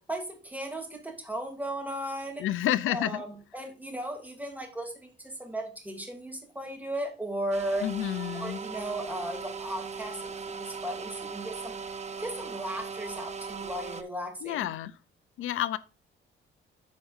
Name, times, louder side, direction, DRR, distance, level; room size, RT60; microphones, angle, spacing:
voice 1, 0.0-2.4 2.9-7.9 8.4-14.7, right 1 dB, 10° right, 2.9 m, -36 dB
voice 2, 2.4-3.2 7.8-8.6 14.4-14.9 15.4-15.8, left 12 dB, 85° left, 0.6 m, -29 dB
sound 1, 7.5-14.0, right 5 dB, 35° right, 1.0 m, -38 dB
13.5 x 5.1 x 2.6 m
cardioid pair, 105°, 21 cm